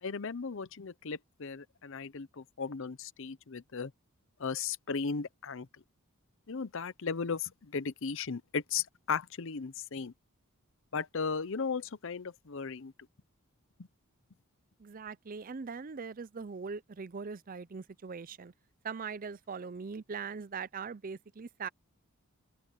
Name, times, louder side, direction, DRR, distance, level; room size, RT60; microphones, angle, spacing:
voice 1, 0.0-3.9 4.4-5.7 6.5-10.1 10.9-12.9, left 5 dB, 60° left, 0.7 m, -36 dB
voice 2, 14.8-18.5 18.8-21.7, right 5 dB, 40° right, 0.5 m, -41 dB
open air
head